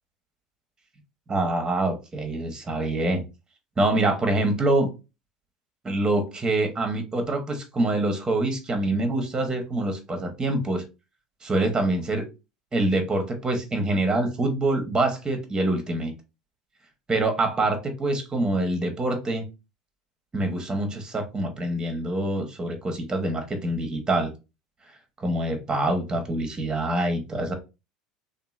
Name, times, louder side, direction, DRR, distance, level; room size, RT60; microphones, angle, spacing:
voice 1, 1.3-3.2 3.8-4.9 5.8-10.8 11.4-12.3 12.7-16.1 17.1-19.5 20.3-24.3 25.2-27.5, right 2 dB, 20° right, 5 dB, 0.9 m, -25 dB
2.9 x 2.5 x 2.4 m, 0.27 s
hypercardioid pair, 80°, 3 cm